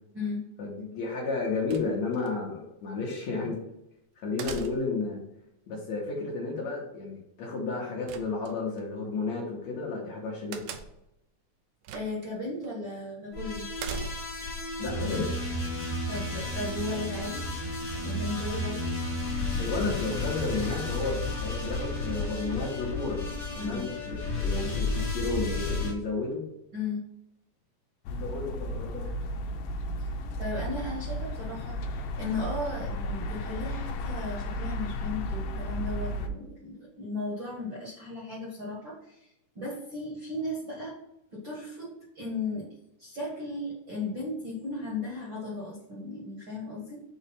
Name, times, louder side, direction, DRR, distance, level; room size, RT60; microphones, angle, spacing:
voice 1, 0.6-3.6 4.2-5.2 5.7-10.7 14.8-15.3 19.6-23.2 23.5-26.4 28.1-29.1, left 3 dB, 65° left, -3 dB, 2.0 m, -32 dB
sound 1, 1.7-2.3 4.4-5.1 8.1-8.8 10.5-11.1 11.8-12.3 12.6-12.7 13.8-14.5, right 6 dB, 85° right, 1.7 m, -40 dB
voice 2, 11.9-13.7 16.1-17.5 17.9-18.9 23.6-23.8 26.7-27.0 30.4-40.9 41.3-42.7 43.0-47.0, left 2 dB, 50° right, -5 dB, 1.5 m, -36 dB
sound 2, 13.3-25.9, left 2 dB, 30° left, 1.3 m, -32 dB
sound 3, 28.1-36.3, left 1 dB, 90° left, 2.4 m, -34 dB
6.4 x 3.2 x 5.5 m, 0.85 s
omnidirectional pair, 4.1 m